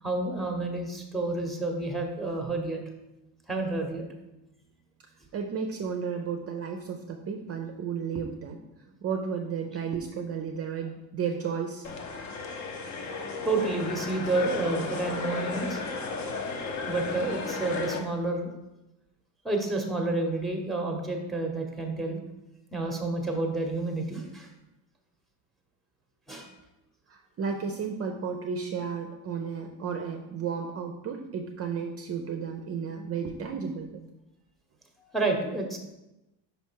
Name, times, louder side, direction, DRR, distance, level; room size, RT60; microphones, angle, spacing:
voice 1, 0.0-2.8 3.5-4.0 13.4-15.8 16.9-18.5 19.4-22.2 22.7-24.5 26.3-26.5 35.1-35.8, right 2 dB, ahead, 3 dB, 0.9 m, -29 dB
voice 2, 5.3-8.6 9.0-11.9 27.1-34.0, right 6 dB, 35° right, 3 dB, 0.5 m, -33 dB
sound 1, 11.8-18.0, left 3 dB, 40° left, 0.9 m, -34 dB
5.5 x 4.6 x 4.5 m, 0.97 s
cardioid pair, 135°, 42 cm